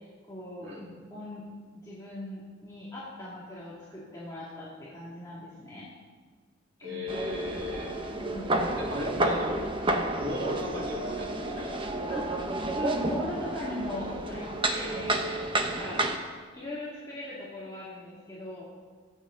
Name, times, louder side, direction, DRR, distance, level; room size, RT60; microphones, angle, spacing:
voice 1, 0.3-0.7 1.1-1.5 1.8-5.9 6.8-7.0 8.1-8.7 12.1-12.4 12.7-16.0 16.5-18.7, left 1 dB, 20° left, -8 dB, 2.5 m, -39 dB
voice 2, 6.8-8.0 8.8-9.7 10.2-11.8 12.2-12.3, left 1 dB, 60° right, -4 dB, 3.8 m, -36 dB
sound 1, 7.1-16.2, right 2 dB, 25° right, 1.1 m, -30 dB
23.5 x 8.3 x 4.0 m, 1.6 s
head